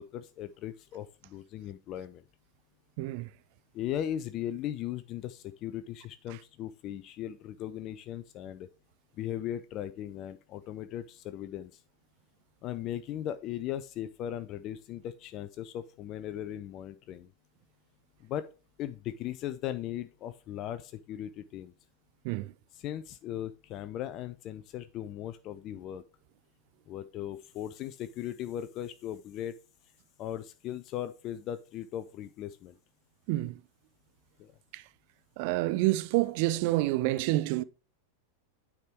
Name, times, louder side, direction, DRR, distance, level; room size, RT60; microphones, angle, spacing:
voice 1, 0.0-2.2 3.7-8.7 9.2-11.8 12.6-17.3 18.2-18.5 18.8-21.7 22.7-26.0 26.9-29.6 30.2-32.8 34.4-34.5, left 11 dB, 35° left, 0.4 m, -38 dB
voice 2, 3.0-3.3 22.2-22.5 33.3-33.6 34.7-34.8 35.4-37.6, right 18 dB, 45° right, 0.4 m, -28 dB
9.2 x 3.6 x 4.5 m
figure-of-eight pair, 90°, 0 cm